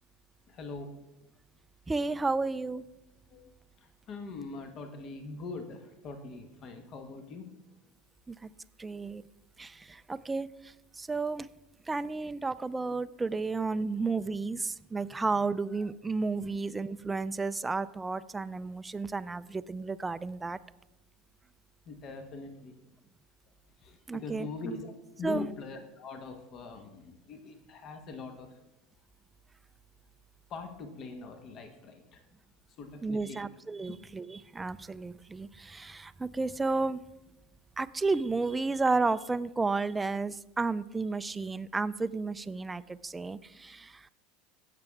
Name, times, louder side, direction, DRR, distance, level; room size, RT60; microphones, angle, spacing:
voice 1, 0.5-0.9 3.3-3.5 3.8-7.5 21.9-22.7 23.8-28.6 30.5-32.2 32.8-33.5, left 3 dB, 45° left, 7 dB, 1.3 m, -42 dB
voice 2, 1.9-2.8 8.3-8.5 8.8-9.2 9.6-11.5 11.9-20.6 24.1-24.5 25.2-25.5 33.0-37.0 37.8-44.1, right 3 dB, 15° right, 14 dB, 0.4 m, -32 dB
16.5 x 6.7 x 3.6 m, 0.96 s
hypercardioid pair, 85°, 0 cm